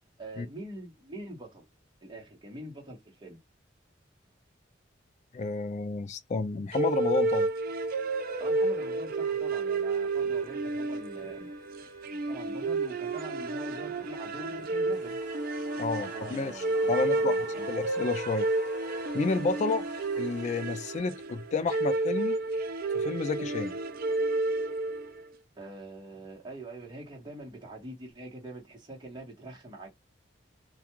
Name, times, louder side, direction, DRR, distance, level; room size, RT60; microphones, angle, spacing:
voice 1, 0.2-1.7 2.0-3.4 8.4-11.5 12.1-15.2 15.9-17.7 19.5-19.6 25.6-29.9, right 1 dB, 25° right, 1.1 m, -44 dB
voice 2, 5.3-7.5 15.8-16.5 16.9-17.3 17.7-18.5 19.1-19.8 20.2-22.4 22.9-23.7, left 3 dB, 40° left, 0.3 m, -30 dB
sound 1, 6.7-25.2, right 2 dB, 50° right, 0.4 m, -31 dB
sound 2, 9.9-15.0, left 1 dB, 65° right, 0.9 m, -53 dB
sound 3, 14.9-21.0, left 3 dB, 60° left, 0.8 m, -48 dB
2.4 x 2.3 x 2.9 m
head